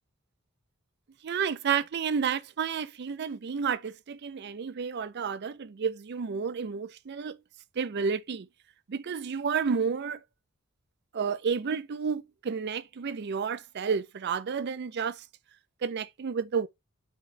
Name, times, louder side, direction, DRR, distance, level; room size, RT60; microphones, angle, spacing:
voice 1, 1.2-7.4 7.8-8.5 8.9-10.2 11.1-15.2 15.8-16.7, right 6 dB, 50° right, 0.4 m, -31 dB
7.2 x 3.1 x 4.4 m
head